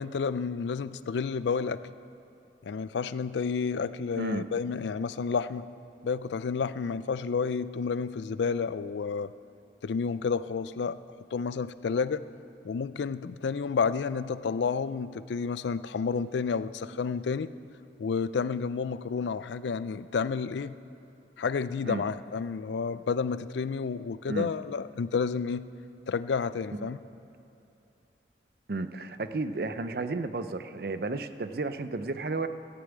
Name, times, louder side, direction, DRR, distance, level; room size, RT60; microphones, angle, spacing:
voice 1, 0.0-1.8 2.6-5.7 6.0-9.3 9.8-11.0 11.3-12.3 12.6-17.5 18.0-20.7 21.4-25.6 26.1-27.0, left 5 dB, 80° left, 15 dB, 0.4 m, -30 dB
voice 2, 28.7-32.5, right 3 dB, 55° right, 10 dB, 0.6 m, -32 dB
14.5 x 7.0 x 9.1 m, 2.9 s
head